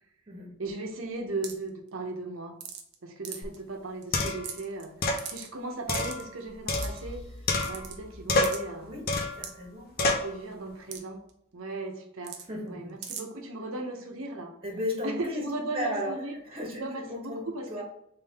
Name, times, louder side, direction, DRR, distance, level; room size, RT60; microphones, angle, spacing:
voice 1, 0.6-2.6 3.0-7.2 7.7-8.9 10.0-11.2 11.5-12.4 12.6-14.5 15.0-16.4 16.8-17.8, right 2 dB, 85° right, 3 dB, 0.9 m, -37 dB
sound 1, 1.4-1.7 2.6-2.9 3.2-3.6 4.0-4.1 4.3-4.8 5.2-5.5 5.9-6.2 6.8-7.0 7.6-7.9 8.4-8.6 9.4-9.5 10.9-11.0 11.3-11.4 12.2-12.4 13.0-13.2, right 8 dB, 55° right, 0.7 m, -38 dB
sound 2, 3.4-3.5 4.1-4.5 5.0-5.3 5.9-7.2 7.5-8.0 8.3-8.7 9.1-9.4 10.0-10.3, left 2 dB, 50° left, 0.7 m, -28 dB
sound 3, 6.7-10.4, left 1 dB, 70° left, 1.5 m, -45 dB
voice 2, 9.4-9.9 12.5-12.7 14.6-15.4 15.7-16.1 16.5-17.8, left 1 dB, 30° right, -2 dB, 1.5 m, -34 dB
3.5 x 3.5 x 3.5 m, 0.77 s
head